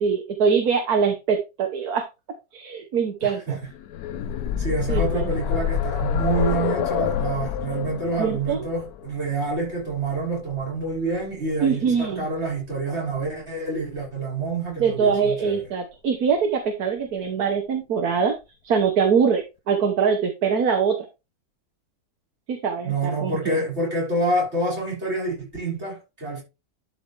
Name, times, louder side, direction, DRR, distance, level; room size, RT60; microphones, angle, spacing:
voice 1, 0.0-2.0 2.5-3.6 4.9-5.2 8.2-8.6 11.6-12.3 14.8-18.3 18.6-21.0 22.5-23.6, right 6 dB, 70° right, 1.7 m, -23 dB
voice 2, 3.2-3.6 4.6-15.6 22.8-26.4, right 2 dB, 45° right, 5.8 m, -27 dB
sound 1, 3.7-11.5 12.7-12.8 13.2-13.3, left 8 dB, 80° left, 1.2 m, -27 dB
12.0 x 4.7 x 3.4 m
omnidirectional pair, 1.6 m